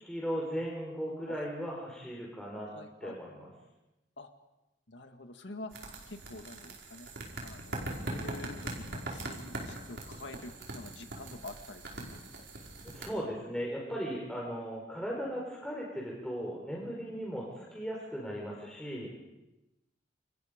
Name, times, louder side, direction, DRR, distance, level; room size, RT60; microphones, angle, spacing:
voice 1, 0.0-2.7 3.0-3.5 12.8-19.1, equal, 5° left, -3 dB, 4.8 m, -37 dB
voice 2, 2.7-3.2 4.2-4.3 4.9-5.7 6.1-7.1 7.4-12.2, left 2 dB, 75° left, 6 dB, 2.0 m, -47 dB
sound 1, 5.7-13.1, right 1 dB, 65° right, 5.5 m, -41 dB
29.0 x 28.0 x 5.2 m, 0.96 s
head